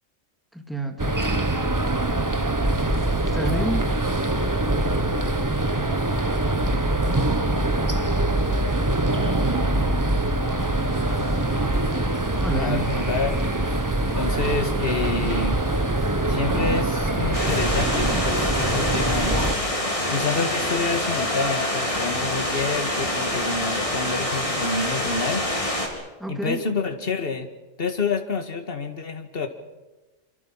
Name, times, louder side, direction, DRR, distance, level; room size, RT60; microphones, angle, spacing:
voice 1, 0.5-1.2 3.2-3.9 12.4-12.8 26.2-26.6, right 1 dB, ahead, 4 dB, 2.5 m, -29 dB
sound 1, 1.0-19.5, right 2 dB, 15° right, 1.1 m, -23 dB
sound 2, 10.6-18.4, left 1 dB, 75° left, 3.2 m, -40 dB
voice 2, 12.5-13.8 14.1-15.6 16.3-19.5 20.1-25.5 26.3-27.5 27.8-29.5, left 4 dB, 45° left, 6 dB, 2.1 m, -28 dB
sound 3, 17.3-25.9, left 1 dB, 25° left, 3.8 m, -26 dB
26.0 x 25.0 x 5.7 m, 1.1 s
omnidirectional pair, 1.3 m